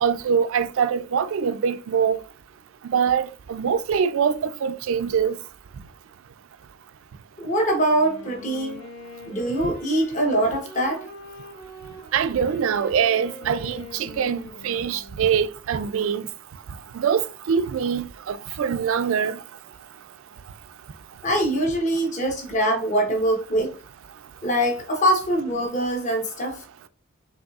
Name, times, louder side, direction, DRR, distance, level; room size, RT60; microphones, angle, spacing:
voice 1, 0.0-2.2 2.9-5.4 12.1-16.3 16.9-19.4, right 7 dB, 65° right, 0.3 m, -23 dB
voice 2, 7.4-8.8 9.3-11.0 21.2-23.7 24.4-26.6, right 1 dB, 35° left, 0.9 m, -23 dB
Wind instrument woodwind instrument, 7.9-15.5, equal, 80° left, 2.0 m, -43 dB
5.2 x 3.2 x 2.4 m
head